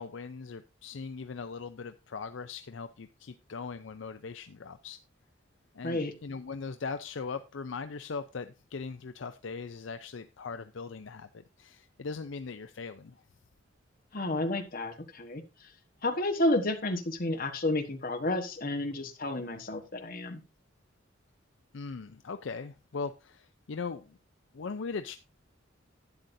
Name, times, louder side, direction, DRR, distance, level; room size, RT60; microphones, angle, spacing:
voice 1, 0.0-5.0 5.7-11.3 11.6-13.2 21.7-24.2 24.5-25.2, left 4 dB, 65° left, 0.5 m, -39 dB
voice 2, 5.8-6.1 14.1-15.4 16.0-20.4, left 1 dB, 45° left, 1.3 m, -31 dB
11.5 x 9.0 x 2.7 m
head